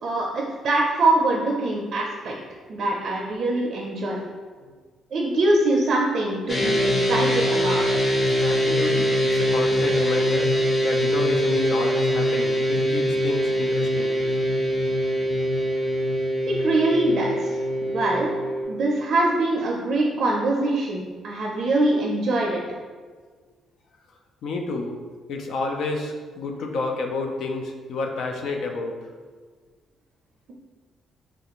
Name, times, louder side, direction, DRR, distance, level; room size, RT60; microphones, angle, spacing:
voice 1, 0.0-2.3 2.7-4.2 5.1-7.9 16.5-18.3 18.7-22.6, right 2 dB, 60° right, -2 dB, 0.4 m, -23 dB
sound 1, 6.5-18.6, equal, 30° left, 0.6 m, -23 dB
voice 2, 8.4-10.5 10.8-14.2 24.4-25.0 25.3-29.1, left 3 dB, 75° left, 3 dB, 0.4 m, -30 dB
3.2 x 2.4 x 2.9 m, 1.5 s
cardioid pair, 90°, 0 cm